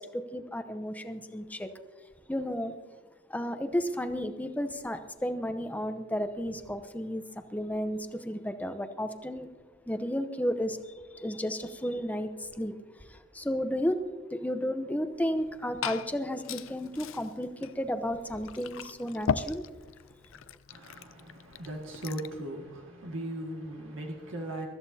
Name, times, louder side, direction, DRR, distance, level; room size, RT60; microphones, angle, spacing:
voice 1, 0.0-1.7 2.3-2.8 3.3-9.5 9.9-14.0 14.3-19.6, equal, 10° left, 0.8 m, -33 dB
Liquid, 15.3-22.4, left 6 dB, 85° left, 0.5 m, -39 dB
voice 2, 20.7-24.7, right 1 dB, 85° right, 2.0 m, -38 dB
23.0 x 13.5 x 2.8 m
head